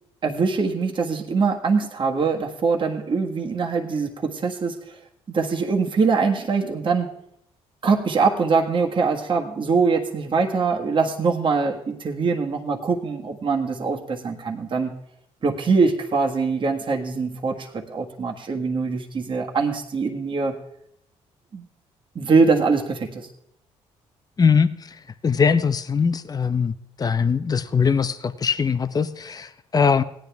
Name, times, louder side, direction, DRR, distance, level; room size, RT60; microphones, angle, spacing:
voice 1, 0.2-5.0 5.3-7.1 7.8-14.9 15.4-20.6 21.5-21.6 22.1-23.3, right 4 dB, 40° right, 1 dB, 1.6 m, -23 dB
voice 2, 24.4-24.8 25.2-26.7 27.0-30.0, left 6 dB, 30° left, 11 dB, 0.7 m, -21 dB
16.0 x 10.0 x 3.5 m, 0.73 s
supercardioid pair, 70°, 13 cm